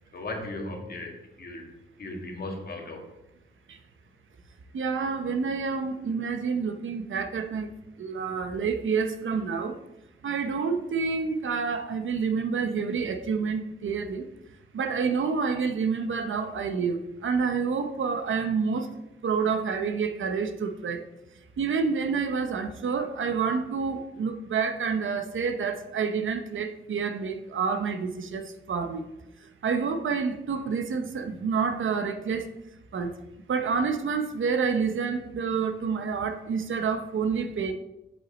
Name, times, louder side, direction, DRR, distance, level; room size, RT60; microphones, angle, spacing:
voice 1, 0.1-1.7 2.0-3.0, left 2 dB, 50° left, 1 dB, 1.8 m, -36 dB
voice 2, 4.7-7.7 8.0-9.8 10.2-14.3 14.7-18.9 19.2-21.0 21.6-29.1 29.4-32.5 32.9-33.2 33.5-37.7, right 5 dB, 85° right, 8 dB, 0.8 m, -28 dB
8.1 x 7.4 x 4.1 m, 0.93 s
wide cardioid pair, 175°, 20 cm